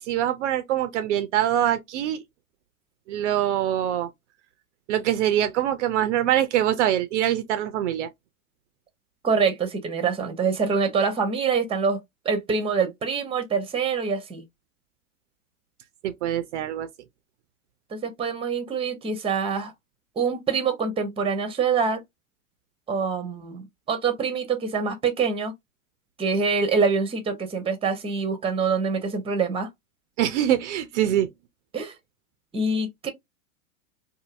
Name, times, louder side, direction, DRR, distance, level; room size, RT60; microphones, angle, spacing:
voice 1, 0.0-2.2 3.1-4.1 4.9-8.1 16.0-16.9 30.2-31.3, right 11 dB, 60° right, 0.5 m, -24 dB
voice 2, 9.2-12.0 12.2-14.4 17.9-19.7 20.2-22.0 22.9-23.6 23.9-25.5 26.2-29.7 31.7-31.9 32.5-33.1, right 5 dB, 15° right, 0.8 m, -25 dB
2.6 x 2.6 x 2.5 m
hypercardioid pair, 110°, 42 cm